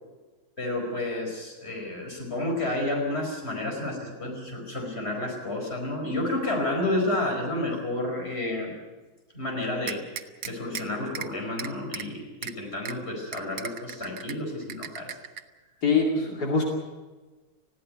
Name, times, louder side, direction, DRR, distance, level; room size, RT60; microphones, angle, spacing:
voice 1, 0.6-8.7 9.3-10.0 10.5-15.2, left 1 dB, 40° left, 1 dB, 5.3 m, -30 dB
sound 1, 9.9-10.8 11.1-11.3 11.6-12.0 12.4-12.5 12.9-13.0 13.3-14.3 14.7-15.4, right 8 dB, 75° right, 1.5 m, -35 dB
voice 2, 15.8-16.6, left 4 dB, 80° left, 0 dB, 3.0 m, -23 dB
20.0 x 15.5 x 9.3 m, 1.3 s
omnidirectional pair, 1.7 m